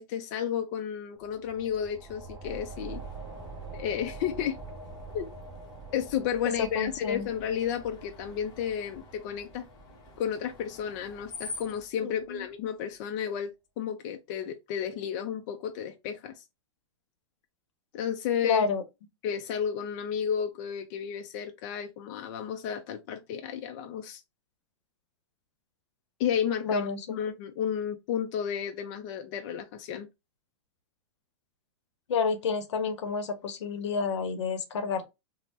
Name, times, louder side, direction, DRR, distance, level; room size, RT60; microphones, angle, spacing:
voice 1, 0.0-3.0 3.7-4.6 5.1-5.3 5.9-9.7 10.2-13.5 13.8-16.4 17.9-18.7 19.2-24.2 26.2-30.1, left 8 dB, 40° left, 0.4 m, -32 dB
sound 1, 1.2-12.4, right 3 dB, 20° right, 0.5 m, -46 dB
Screech, 2.5-11.8, left 3 dB, 25° left, 0.9 m, -48 dB
voice 2, 6.6-7.3 12.0-12.5 18.4-18.8 26.6-27.1 32.1-35.0, left 5 dB, 75° left, 0.7 m, -29 dB
3.2 x 2.0 x 2.8 m
hypercardioid pair, 140°, 15 cm